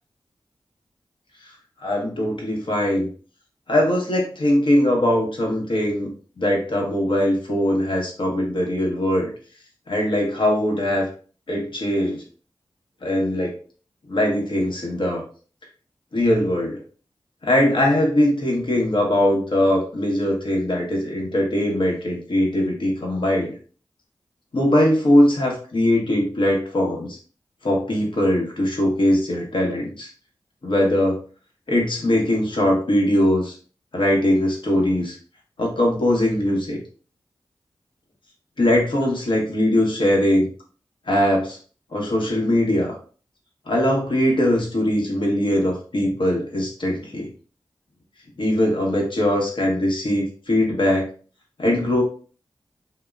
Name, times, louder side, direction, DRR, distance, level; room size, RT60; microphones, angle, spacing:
voice 1, 1.8-3.1 3.7-6.1 6.4-9.3 9.9-11.1 11.5-12.2 13.0-13.5 14.1-15.2 16.1-16.8 17.4-23.5 24.5-27.2 27.6-30.1 30.6-31.2 31.7-33.6 33.9-35.2 35.6-36.8 38.6-40.5 41.1-41.6 41.9-43.0 43.7-47.3 48.4-51.1 51.6-52.0, left 1 dB, 65° left, -1 dB, 0.9 m, -21 dB
2.9 x 2.0 x 2.3 m, 0.40 s
cardioid pair, 45°, 9 cm